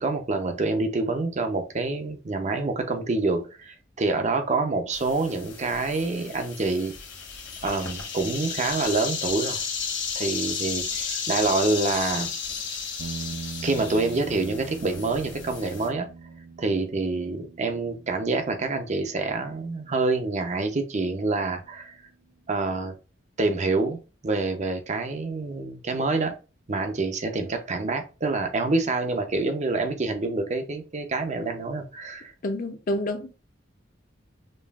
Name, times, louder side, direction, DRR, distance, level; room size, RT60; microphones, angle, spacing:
voice 1, 0.0-6.9 7.6-9.6 10.2-12.3 13.6-16.1 16.6-22.0 22.5-22.9 23.4-24.0 24.2-26.3 26.7-32.3, right 3 dB, 40° right, 0.6 m, -27 dB
sound 1, 4.9-15.9, left 6 dB, 65° left, 1.3 m, -33 dB
sound 2, 13.0-21.3, right 4 dB, 80° right, 0.4 m, -42 dB
voice 2, 32.4-33.4, left 1 dB, 45° left, 0.6 m, -28 dB
5.2 x 2.4 x 2.3 m
head